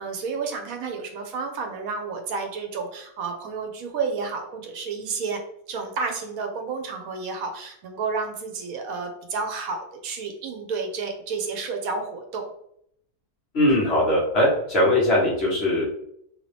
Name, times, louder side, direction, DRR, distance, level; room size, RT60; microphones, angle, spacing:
voice 1, 0.0-5.4 5.7-12.4, right 4 dB, 75° right, 4 dB, 1.1 m, -31 dB
voice 2, 13.5-15.9, left 1 dB, 50° left, -4 dB, 1.1 m, -20 dB
2.8 x 2.7 x 3.2 m, 0.72 s
omnidirectional pair, 1.5 m